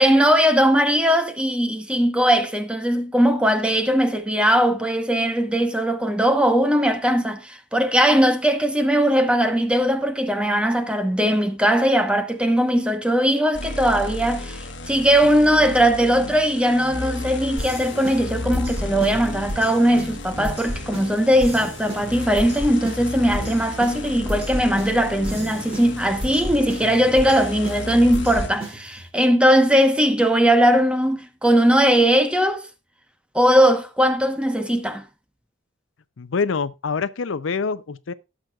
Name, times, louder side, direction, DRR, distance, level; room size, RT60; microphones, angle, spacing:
voice 1, 0.0-32.7 33.3-35.1, equal, 5° right, 1.0 m, -19 dB
sound 1, 13.5-28.5, left 2 dB, 65° left, 1.2 m, -33 dB
sound 2, 17.6-29.1, equal, 30° right, 2.6 m, -34 dB
voice 2, 36.2-38.1, left 5 dB, 80° left, 0.6 m, -25 dB
18.0 x 6.3 x 2.4 m
head